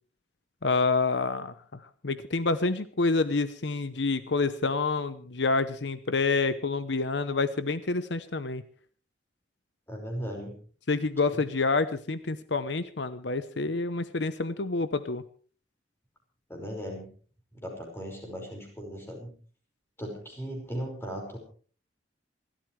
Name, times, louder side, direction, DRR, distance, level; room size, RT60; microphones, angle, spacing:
voice 1, 0.6-8.6 10.9-15.2, left 3 dB, 75° left, 12 dB, 0.9 m, -28 dB
voice 2, 9.9-10.5 16.5-17.1 17.5-19.3 20.0-21.4, equal, 15° left, 1 dB, 5.4 m, -37 dB
27.5 x 13.0 x 3.3 m, 0.41 s
head